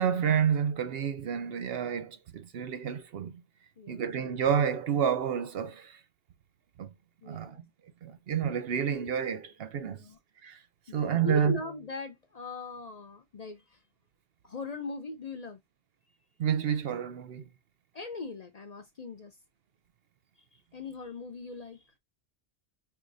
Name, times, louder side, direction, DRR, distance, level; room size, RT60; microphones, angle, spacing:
voice 1, 0.0-3.4 3.9-6.0 6.8-6.9 7.3-7.7 8.0-10.0 10.4-10.6 10.9-11.6 16.4-17.5, right 8 dB, 65° right, 0.8 m, -29 dB
voice 2, 7.2-7.6 9.9-10.2 11.1-13.8 14.4-15.6 17.9-19.3 20.7-21.8, left 4 dB, 45° left, 0.6 m, -40 dB
5.6 x 3.1 x 2.5 m
omnidirectional pair, 1.1 m